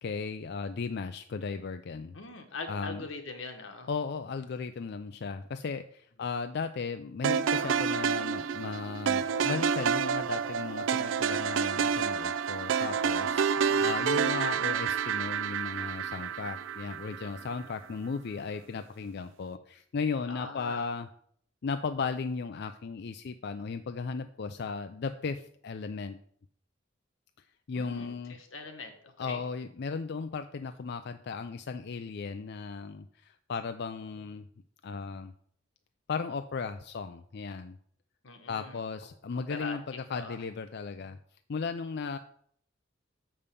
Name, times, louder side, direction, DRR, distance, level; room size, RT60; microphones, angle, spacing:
voice 1, 0.0-2.2 2.7-3.0 3.9-21.1 21.6-26.2 27.7-28.4 29.2-34.4 34.8-35.3 36.1-37.8 38.5-41.2 41.5-42.2, left 5 dB, 55° left, 9 dB, 0.4 m, -36 dB
voice 2, 2.1-3.9 13.5-14.2 20.3-20.9 27.7-29.4 38.2-38.8 39.5-39.8 40.1-40.4, left 3 dB, 85° left, 5 dB, 1.4 m, -42 dB
sound 1, 7.2-17.5, right 7 dB, 75° right, 0.4 m, -29 dB
6.8 x 5.4 x 6.8 m, 0.62 s
head